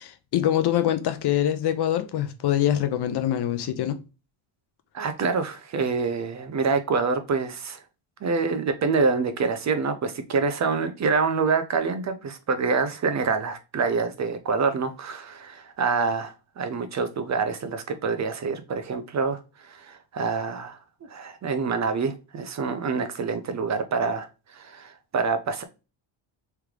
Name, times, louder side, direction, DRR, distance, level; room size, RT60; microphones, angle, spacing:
voice 1, 0.0-4.0, left 11 dB, 55° left, 0.7 m, -24 dB
voice 2, 4.9-7.8 8.2-20.8 21.1-25.6, right 4 dB, 35° right, 0.6 m, -26 dB
3.5 x 3.4 x 3.1 m
cardioid pair, 130°, 48 cm